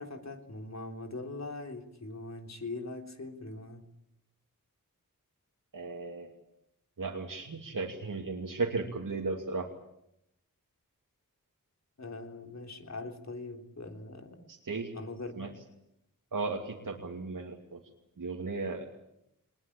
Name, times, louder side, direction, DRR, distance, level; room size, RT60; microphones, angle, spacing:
voice 1, 0.0-3.9 12.0-14.5 14.9-15.5, left 2 dB, 50° left, 4 dB, 3.6 m, -42 dB
voice 2, 5.7-6.3 7.0-9.7 14.5-14.9 15.4-15.5 16.3-17.8 18.2-18.8, right 3 dB, 70° right, 1 dB, 2.7 m, -35 dB
23.0 x 20.5 x 8.7 m, 0.81 s
wide cardioid pair, 55°, 34 cm